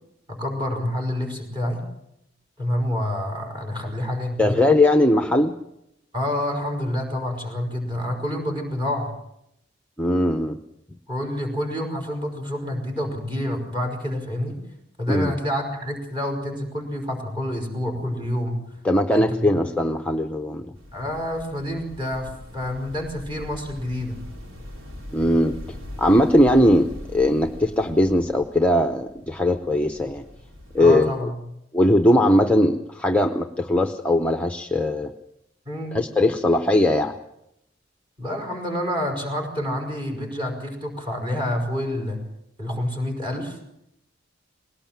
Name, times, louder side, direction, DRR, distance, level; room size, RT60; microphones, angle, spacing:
voice 1, 0.3-1.8 2.6-4.6 6.1-9.1 11.1-14.6 15.0-18.6 19.1-19.6 20.9-24.2 30.8-31.3 35.7-36.0 38.2-42.2 42.6-43.6, left 1 dB, 25° right, 3 dB, 5.3 m, -28 dB
voice 2, 4.4-5.6 10.0-10.6 15.1-15.3 18.8-20.7 25.1-25.6 26.0-30.2 30.7-31.3 31.7-35.1 35.9-37.1, left 1 dB, 5° left, 5 dB, 0.7 m, -20 dB
sound 1, 20.7-30.9, left 1 dB, 90° right, 3.7 m, -41 dB
20.5 x 18.0 x 7.4 m, 0.81 s
head